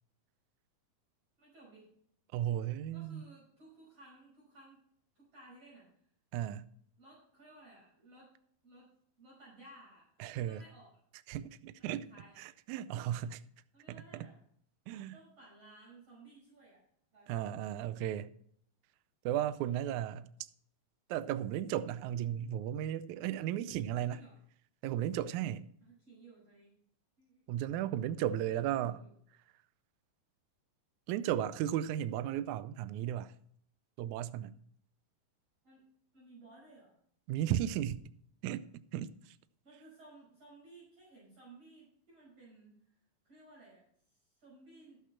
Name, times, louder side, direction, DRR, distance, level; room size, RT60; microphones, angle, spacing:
voice 1, 1.4-1.9 2.9-4.8 5.2-5.9 7.0-8.3 8.6-8.9 9.2-10.1 10.5-10.9 11.8-12.4 13.7-14.4 15.1-16.8 17.1-17.6 24.1-24.4 25.8-26.7 27.2-27.7 28.6-29.1 35.6-35.9 36.1-37.0 39.6-42.9 43.2-43.8 44.1-45.0, right 2 dB, 45° right, 6.4 m, -58 dB
voice 2, 2.3-3.2 6.3-6.6 10.2-10.6 11.3-12.1 12.4-13.4 14.1-14.3 14.9-15.1 17.3-18.3 19.3-20.3 21.1-24.2 24.8-25.6 27.5-29.0 31.1-33.3 34.0-34.6 37.3-38.0 38.4-38.7 38.9-39.1, right 11 dB, 90° right, 1.7 m, -35 dB
13.0 x 8.3 x 4.3 m
omnidirectional pair, 4.1 m